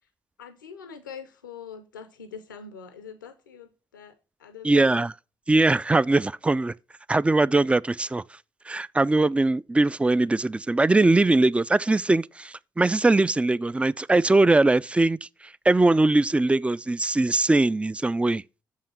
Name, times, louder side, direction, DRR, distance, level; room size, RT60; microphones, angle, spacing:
voice 1, 0.4-5.0, left 7 dB, 90° left, 0.5 m, -43 dB
voice 2, 4.6-5.1 5.5-6.7 7.1-8.2 8.7-15.3 15.7-18.4, right 2 dB, 10° right, 0.3 m, -21 dB
6.9 x 5.6 x 6.0 m
figure-of-eight pair, 40°, 10 cm